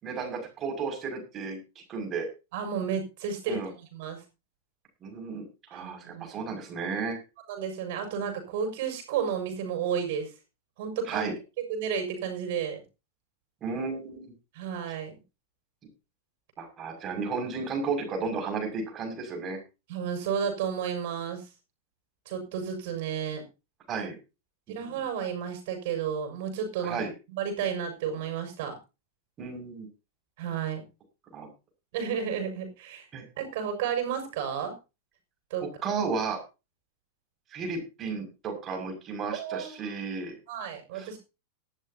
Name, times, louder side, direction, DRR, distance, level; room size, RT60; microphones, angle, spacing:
voice 1, 0.0-1.6 1.9-2.3 3.5-3.7 5.0-7.2 11.0-11.3 13.6-14.3 16.6-19.6 23.9-24.2 24.7-25.0 26.8-27.1 29.4-29.9 31.3-31.5 33.1-33.2 35.8-36.4 37.5-40.3 40.9-41.2, right 4 dB, 30° right, 3 dB, 6.4 m, -33 dB
voice 2, 2.5-4.2 5.7-6.3 7.5-10.3 10.8-11.3 11.7-12.8 14.5-15.1 19.9-21.5 22.3-23.4 24.7-27.0 27.3-28.7 30.4-30.8 31.9-33.0 33.4-34.7 35.5-35.6 39.3-40.0 40.5-41.2, right 7 dB, 50° right, 4 dB, 6.4 m, -32 dB
18.5 x 13.0 x 2.8 m, 0.30 s
figure-of-eight pair, 95°, 0 cm